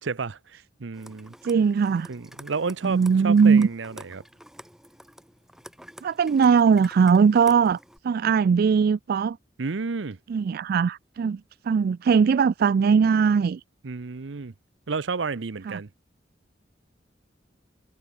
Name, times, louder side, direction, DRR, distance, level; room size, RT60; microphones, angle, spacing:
voice 1, 0.0-1.3 2.1-4.2 9.6-10.2 13.8-14.5 14.9-15.9, right 4 dB, 80° right, 0.7 m, -31 dB
sound 1, 0.9-8.0, equal, 5° right, 3.6 m, -48 dB
voice 2, 1.4-2.1 2.8-3.7 6.0-7.8 8.0-9.4 10.3-11.4 11.7-13.6 15.7-15.8, right 6 dB, 55° right, 0.3 m, -20 dB
head